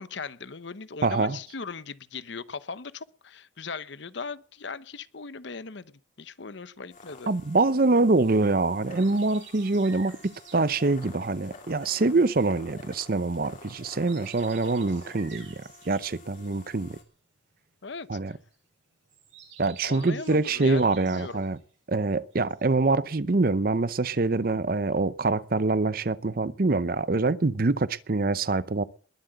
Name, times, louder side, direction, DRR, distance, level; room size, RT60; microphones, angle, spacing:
voice 1, 0.0-5.9 6.2-7.3 17.8-18.4 19.8-21.4, left 4 dB, 65° left, 0.8 m, -39 dB
voice 2, 1.0-1.4 7.3-17.0 18.1-18.4 19.6-21.6 21.9-28.8, right 3 dB, 45° right, 0.7 m, -25 dB
sound 1, 6.9-17.0, left 3 dB, 40° left, 2.8 m, -49 dB
sound 2, 7.2-13.0 13.4-22.1 22.3-23.1, right 7 dB, 80° right, 7.1 m, -51 dB
21.0 x 7.8 x 7.9 m
head